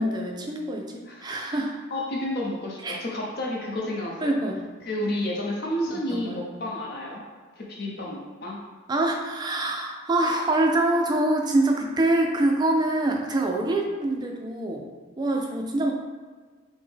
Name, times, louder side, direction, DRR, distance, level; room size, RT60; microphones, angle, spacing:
voice 1, 0.0-0.9 1.2-1.7 2.8-3.0 4.2-4.6 6.1-6.5 8.9-14.9 15.2-15.9, right 1 dB, 20° right, 2 dB, 0.3 m, -25 dB
voice 2, 1.1-1.6 1.9-4.4 4.8-7.2 7.6-8.6, left 1 dB, 50° left, -2 dB, 0.7 m, -31 dB
5.3 x 2.1 x 3.4 m, 1.5 s
head